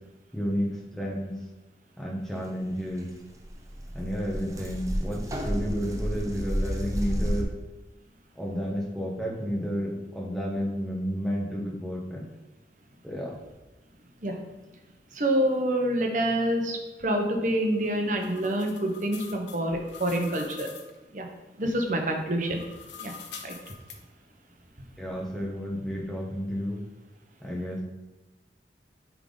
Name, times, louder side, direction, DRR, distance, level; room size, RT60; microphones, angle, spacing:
voice 1, 0.3-1.4 2.0-3.1 3.9-7.5 8.3-12.2 13.0-13.4 25.0-26.8 27.4-27.8, equal, ahead, -3 dB, 1.1 m, -31 dB
sound 1, 3.0-3.1 3.2-7.4, equal, 20° right, 0.6 m, -31 dB
voice 2, 15.1-20.7 21.1-21.3 21.6-22.6 23.0-23.1 23.4-23.5, right 1 dB, 45° right, 2 dB, 0.9 m, -27 dB
sound 2, 17.6-21.0 22.3-24.0, left 6 dB, 90° left, 0.8 m, -45 dB
8.9 x 3.6 x 3.9 m, 1.1 s
head